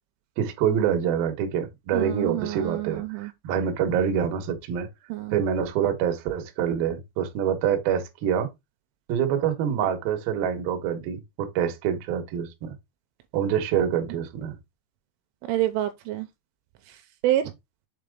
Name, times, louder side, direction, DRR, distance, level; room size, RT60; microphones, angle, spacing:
voice 1, 0.4-4.9 5.3-8.5 9.1-12.7 13.3-14.6, right 8 dB, 65° right, 2.5 m, -26 dB
voice 2, 1.9-3.3 5.1-5.4 15.4-16.3 16.9-17.5, right 13 dB, 85° right, 3.1 m, -28 dB
7.5 x 4.2 x 3.6 m
omnidirectional pair, 5.8 m